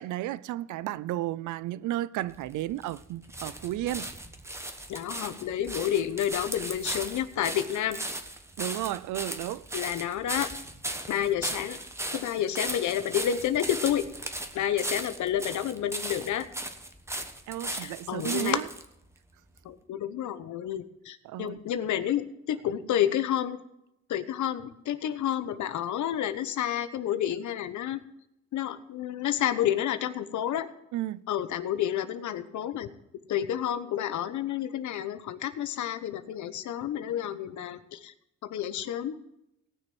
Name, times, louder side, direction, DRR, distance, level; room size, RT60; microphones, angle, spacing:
voice 1, 0.0-4.1 8.6-9.7 17.5-18.7 21.2-21.7 30.9-31.2, right 14 dB, 85° right, 0.5 m, -33 dB
sound 1, 2.3-18.9 19.6-19.7, right 1 dB, 10° right, 1.3 m, -37 dB
voice 2, 4.9-8.0 9.7-10.5 11.1-11.8 12.1-14.0 14.5-16.5 17.7-18.6 19.6-23.6 24.1-28.0 28.5-30.7 31.3-32.9 33.3-38.1 38.5-39.1, left 10 dB, 75° left, 1.0 m, -30 dB
18.0 x 6.5 x 6.1 m
cardioid pair, 90°, 30 cm